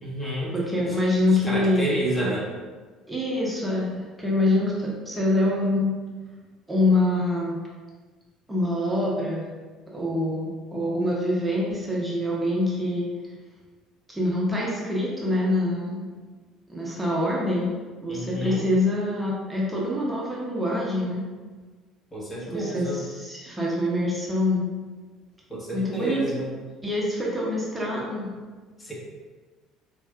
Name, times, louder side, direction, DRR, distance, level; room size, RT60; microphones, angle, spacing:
voice 1, 0.0-0.5 0.9-1.0 1.5-2.4 18.1-18.6 22.1-23.0 25.5-26.5 28.8-28.9, right 1 dB, 20° left, -5 dB, 1.1 m, -29 dB
voice 2, 0.5-1.9 2.2-2.3 3.1-5.9 6.7-7.6 8.5-9.5 9.9-13.0 14.1-16.1 16.7-17.7 18.0-21.2 22.4-24.6 25.7-26.2 26.8-28.3, left 1 dB, 10° right, -5 dB, 0.9 m, -25 dB
4.3 x 2.6 x 2.4 m, 1.4 s
figure-of-eight pair, 60°, 0 cm